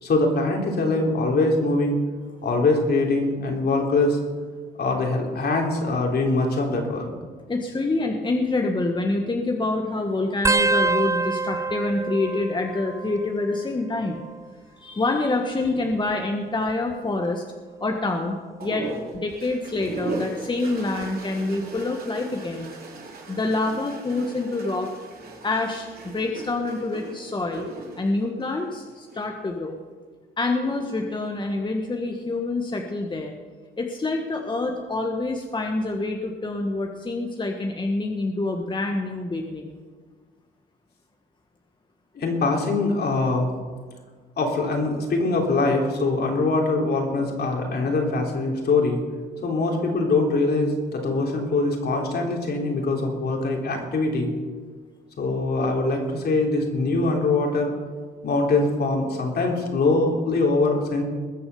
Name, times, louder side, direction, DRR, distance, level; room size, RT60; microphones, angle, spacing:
voice 1, 0.0-2.0 2.4-4.2 4.8-7.1 42.2-43.5 44.4-49.0 49.4-54.3 55.2-57.7 58.2-61.0, left 3 dB, 55° left, 1 dB, 3.4 m, -23 dB
voice 2, 7.5-14.2 14.8-17.4 17.8-18.9 19.1-22.7 23.3-24.9 25.4-27.7 27.9-29.8 30.4-33.3 33.8-39.8, left 2 dB, 25° left, 3 dB, 1.3 m, -26 dB
sound 1, 10.4-13.6 13.9-14.5 15.5-17.0 17.6-17.9 19.1-19.5 21.0-21.1, right 3 dB, 15° right, 0.4 m, -27 dB
sound 2, 18.6-29.3 30.4-31.0, right 2 dB, 50° right, 3.5 m, -38 dB
21.0 x 7.0 x 6.9 m, 1.5 s
cardioid pair, 90°, 20 cm